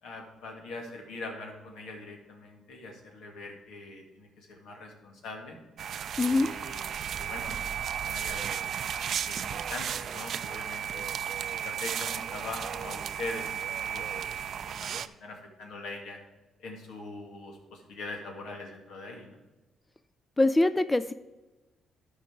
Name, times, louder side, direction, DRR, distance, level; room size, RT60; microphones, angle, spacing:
voice 1, 0.0-5.6 6.2-8.7 9.2-11.1 11.6-14.2 14.5-16.2 16.6-19.4, left 2 dB, 85° left, 2 dB, 2.1 m, -42 dB
sound 1, 5.8-15.1, right 9 dB, 60° right, 0.4 m, -34 dB
voice 2, 6.2-6.5 20.4-21.1, left 2 dB, 15° left, 13 dB, 0.4 m, -23 dB
12.5 x 4.9 x 4.6 m, 1.1 s
cardioid pair, 90°, 0 cm